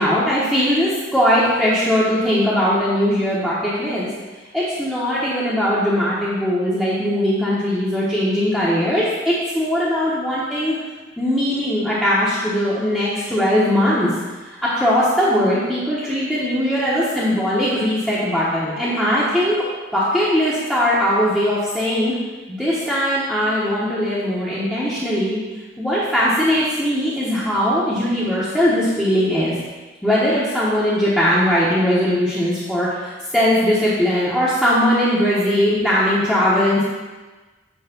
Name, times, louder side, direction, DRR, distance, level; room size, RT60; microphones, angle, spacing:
voice 1, 0.0-4.1 4.5-10.8 11.2-14.1 14.5-19.6 19.9-22.1 22.5-25.4 25.8-29.6 30.0-36.8, equal, 5° left, -10 dB, 1.1 m, -20 dB
8.9 x 3.2 x 6.0 m, 1.3 s
head